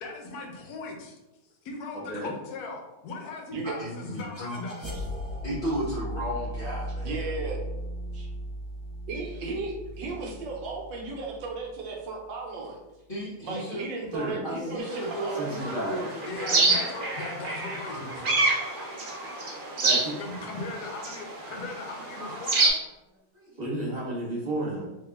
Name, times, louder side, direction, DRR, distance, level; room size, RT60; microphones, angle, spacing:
voice 1, 0.0-1.2 1.6-4.9 16.3-18.4 20.2-22.7, left 3 dB, 65° left, 2 dB, 1.1 m, -38 dB
sound 1, 3.4-12.3, equal, 15° left, 1.3 m, -37 dB
voice 2, 3.8-4.6 5.4-7.3 13.1-14.1 14.4-17.0, equal, 40° left, -6 dB, 0.9 m, -34 dB
voice 3, 7.0-7.6 8.1-8.3 9.1-12.8 13.4-15.7, right 3 dB, 75° right, -1 dB, 1.4 m, -35 dB
voice 4, 14.1-14.5 15.3-16.1 19.6-20.1 23.3-24.8, right 1 dB, 25° right, -7 dB, 1.3 m, -32 dB
sound 2, 14.9-22.7, right 3 dB, 55° right, 0.5 m, -28 dB
3.6 x 3.0 x 3.5 m, 0.99 s
omnidirectional pair, 2.0 m